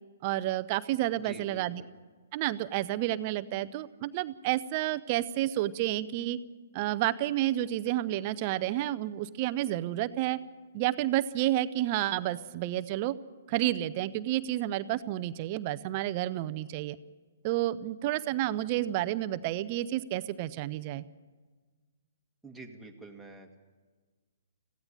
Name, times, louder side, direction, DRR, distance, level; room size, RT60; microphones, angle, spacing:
voice 1, 0.2-1.8 2.3-6.4 6.7-10.4 10.7-13.2 13.5-17.0 17.4-21.0, right 14 dB, 35° right, 15 dB, 0.6 m, -30 dB
voice 2, 1.1-1.9 22.4-23.6, right 3 dB, ahead, 0 dB, 1.8 m, -47 dB
17.0 x 15.5 x 9.9 m, 1.4 s
figure-of-eight pair, 125°, 0 cm